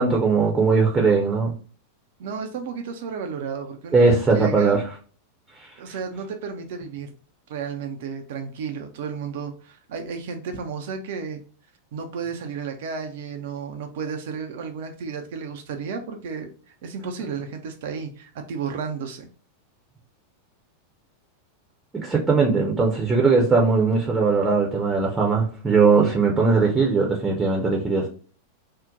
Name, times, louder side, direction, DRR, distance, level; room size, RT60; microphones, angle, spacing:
voice 1, 0.0-1.5 3.9-4.8 21.9-28.1, right 4 dB, 15° right, -1 dB, 0.6 m, -19 dB
voice 2, 2.2-4.8 5.8-7.1 7.5-11.4 11.9-16.5 16.8-19.3, right 5 dB, 55° right, 5 dB, 0.4 m, -32 dB
2.7 x 2.1 x 3.7 m, 0.40 s
figure-of-eight pair, 90°, 0 cm